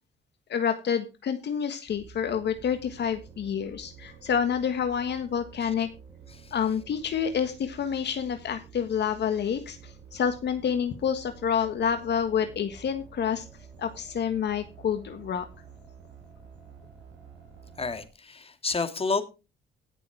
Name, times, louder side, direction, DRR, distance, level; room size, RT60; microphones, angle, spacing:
voice 1, 0.5-5.9 6.5-13.4 13.8-15.4, left 7 dB, 60° left, 9 dB, 1.5 m, -28 dB
sound 1, 1.9-18.1, right 7 dB, 75° right, 6.8 m, -50 dB
voice 2, 17.8-19.2, left 4 dB, 30° left, 9 dB, 2.1 m, -29 dB
17.0 x 7.0 x 4.6 m, 0.30 s
cardioid pair, 90°, 20 cm